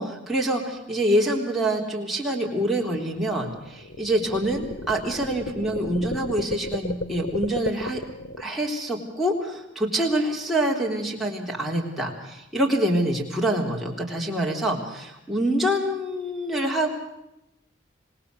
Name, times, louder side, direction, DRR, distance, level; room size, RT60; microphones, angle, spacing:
voice 1, 0.0-8.0 8.4-17.0, right 1 dB, ahead, -3 dB, 3.7 m, -26 dB
sound 1, 2.7-8.4, left 1 dB, 70° left, 1.2 m, -34 dB
26.5 x 19.5 x 6.9 m, 0.87 s
head